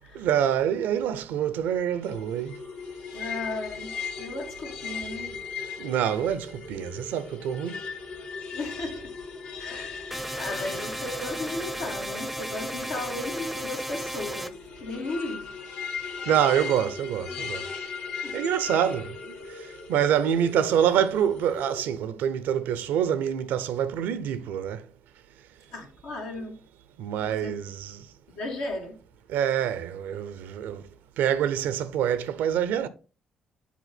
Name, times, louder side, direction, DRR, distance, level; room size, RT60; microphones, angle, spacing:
voice 1, 0.2-2.5 5.8-7.8 16.3-17.6 18.3-19.1 19.9-24.8 27.0-27.7 29.3-30.8 31.2-32.9, right 9 dB, 75° right, 0.6 m, -26 dB
sound 1, 2.0-21.8, left 5 dB, 70° left, 1.2 m, -38 dB
voice 2, 3.1-3.9 4.2-5.3 8.5-9.1 9.6-15.5 18.2-18.3 19.9-20.1 25.7-26.5 27.1-27.6 28.3-28.9, left 2 dB, 85° left, 1.9 m, -35 dB
sound 2, 10.1-14.5, right 1 dB, ahead, 0.6 m, -34 dB
7.3 x 3.9 x 4.2 m
hypercardioid pair, 50°, 3 cm